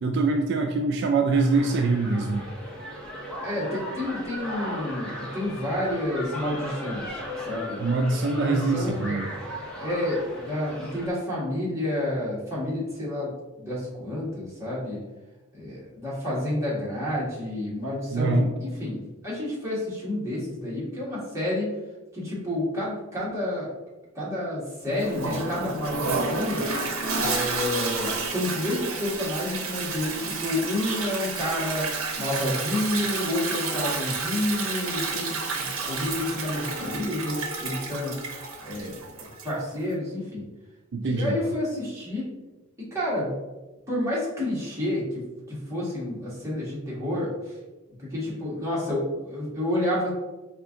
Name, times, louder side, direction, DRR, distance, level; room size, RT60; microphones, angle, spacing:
voice 1, 0.0-2.5 7.8-9.3 18.1-18.5 40.9-41.4, right 3 dB, 55° right, 3 dB, 0.3 m, -24 dB
sound 1, 1.3-11.1, equal, 5° left, 0.8 m, -37 dB
voice 2, 3.4-7.8 8.1-9.2 9.8-13.3 13.6-15.0 15.5-21.7 22.1-23.7 24.1-26.6 27.1-31.9 32.2-38.2 38.6-40.4 41.0-42.3 42.9-43.4 43.9-47.6 48.0-50.1, left 1 dB, 15° right, -8 dB, 1.5 m, -30 dB
Toilet flush, 25.0-39.6, right 4 dB, 75° right, 0.7 m, -30 dB
4.5 x 2.5 x 3.6 m, 1.1 s
head